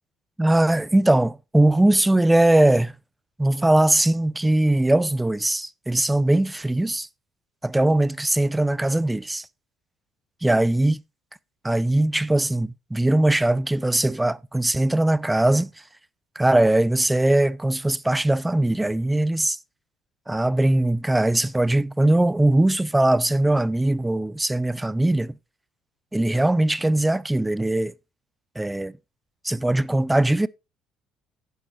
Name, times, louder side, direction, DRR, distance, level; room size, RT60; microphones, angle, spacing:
voice 1, 0.4-2.9 3.4-7.1 7.6-9.5 10.4-11.0 11.6-15.7 16.4-19.6 20.3-25.4 26.1-27.9 28.6-28.9 29.4-30.5, right 1 dB, 10° right, 0.5 m, -20 dB
10.5 x 10.0 x 3.0 m
hypercardioid pair, 60°, 0 cm